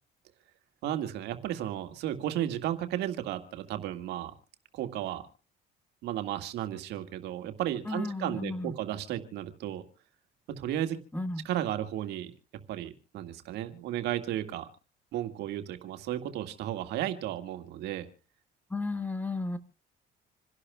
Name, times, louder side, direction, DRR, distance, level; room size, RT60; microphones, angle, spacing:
voice 1, 0.8-4.3 4.7-5.2 6.0-9.8 10.5-11.0 11.4-12.3 12.7-14.7 15.1-18.1, right 12 dB, 80° right, 8 dB, 1.9 m, -34 dB
voice 2, 7.9-8.7 11.1-11.5 18.7-19.6, left 2 dB, 10° left, 10 dB, 1.5 m, -33 dB
27.5 x 11.5 x 2.3 m, 0.35 s
cardioid pair, 110°, 17 cm